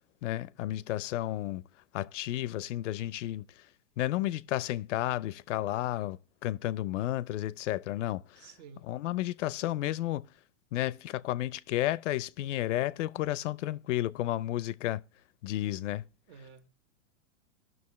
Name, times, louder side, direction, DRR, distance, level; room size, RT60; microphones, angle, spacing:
voice 1, 0.2-1.6 1.9-3.5 4.0-8.4 8.9-10.3 10.7-15.0 15.4-16.0, left 14 dB, 70° left, 0.5 m, -32 dB
voice 2, 8.4-8.9 16.3-16.7, right 6 dB, 55° right, 1.1 m, -52 dB
17.0 x 6.2 x 3.1 m
supercardioid pair, 150°, 39 cm